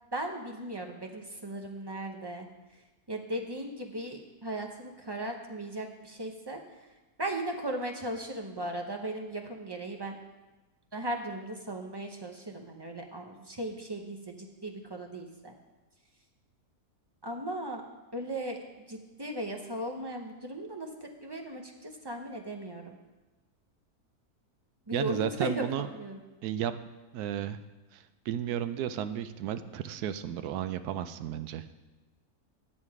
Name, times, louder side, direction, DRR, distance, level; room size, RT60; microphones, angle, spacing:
voice 1, 0.1-2.5 3.1-6.6 7.2-10.2 10.9-15.5 17.2-17.8 18.1-23.0 24.9-26.2, right 1 dB, 25° right, 2 dB, 0.5 m, -37 dB
voice 2, 24.9-25.9 26.4-26.7 27.1-27.6 27.9-31.7, right 10 dB, 80° right, 11 dB, 1.1 m, -33 dB
9.8 x 7.3 x 4.8 m, 1.1 s
omnidirectional pair, 1.6 m